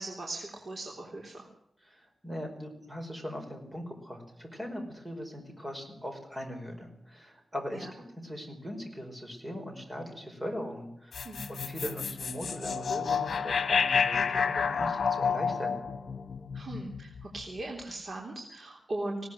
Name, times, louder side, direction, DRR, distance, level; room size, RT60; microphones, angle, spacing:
voice 1, 0.0-1.5 7.7-7.9 11.2-11.4 16.5-19.2, right 2 dB, 50° right, 0 dB, 3.5 m, -39 dB
voice 2, 1.8-7.9 8.2-11.2 11.5-15.8, equal, 15° right, 3 dB, 5.2 m, -40 dB
sound 1, 11.1-17.4, left 6 dB, 70° left, 1.4 m, -30 dB
19.5 x 18.0 x 7.7 m, 0.77 s
wide cardioid pair, 170°, 0 cm